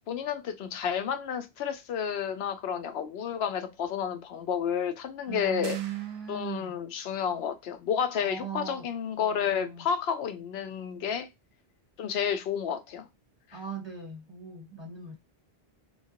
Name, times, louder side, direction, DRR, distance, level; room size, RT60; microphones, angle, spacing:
voice 1, 0.1-5.8 6.3-11.3 12.0-13.1, left 8 dB, 80° left, 0.8 m, -31 dB
voice 2, 5.3-6.7 8.2-8.9 9.2-9.9 13.5-15.2, right 7 dB, 30° right, 0.7 m, -39 dB
sound 1, 5.6-6.7, right 7 dB, 85° right, 0.8 m, -47 dB
2.9 x 2.4 x 2.7 m
omnidirectional pair, 1.0 m